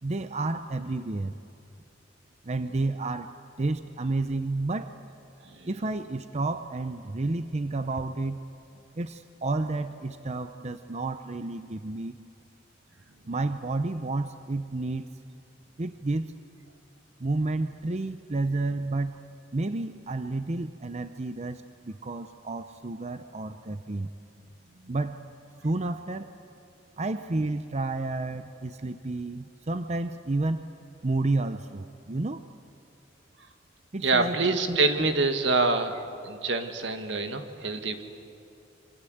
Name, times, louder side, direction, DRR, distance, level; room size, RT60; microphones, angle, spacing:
voice 1, 0.0-1.4 2.5-3.3 3.6-4.9 5.6-8.4 9.0-12.2 13.3-15.1 15.8-16.3 17.2-19.2 19.5-24.1 24.9-25.2 25.6-26.3 27.0-30.6 31.0-32.4 33.9-35.1, right 2 dB, 35° right, 9 dB, 0.7 m, -30 dB
voice 2, 34.0-36.0 36.2-38.0, right 3 dB, 75° right, 7 dB, 1.9 m, -26 dB
26.5 x 24.5 x 8.0 m, 2.8 s
head